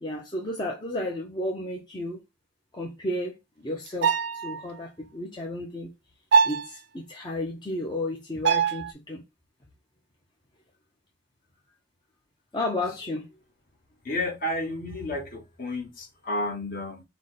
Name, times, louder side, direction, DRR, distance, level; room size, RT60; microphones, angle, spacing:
voice 1, 0.0-2.2 2.7-4.2 4.4-5.9 6.4-9.2 12.5-13.3, left 1 dB, 20° left, 0.6 m, -32 dB
sound 1, 3.9-4.6 6.3-6.7 8.4-8.9, right 6 dB, 55° right, 0.3 m, -22 dB
voice 2, 14.0-17.0, left 1 dB, 45° left, 1.2 m, -31 dB
5.0 x 2.1 x 3.9 m
head